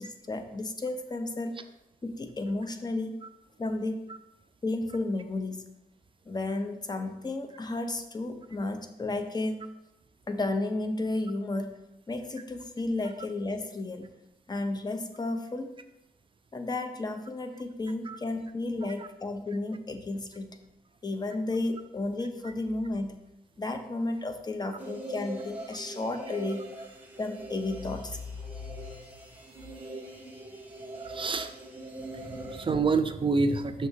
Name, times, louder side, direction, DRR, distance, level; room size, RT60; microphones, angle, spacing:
voice 1, 0.0-1.5 2.0-3.2 3.6-4.0 4.6-5.7 6.3-9.6 10.3-11.8 12.1-14.1 14.5-15.7 16.5-20.6 21.0-23.2 23.6-26.8 27.2-28.2, left 2 dB, 25° left, 7 dB, 0.6 m, -33 dB
sound 1, 24.8-32.7, right 1 dB, 10° right, 1.0 m, -42 dB
voice 2, 31.0-31.5 32.1-33.9, right 4 dB, 30° right, 9 dB, 0.4 m, -28 dB
6.0 x 3.5 x 5.5 m, 0.91 s
wide cardioid pair, 125°, 16 cm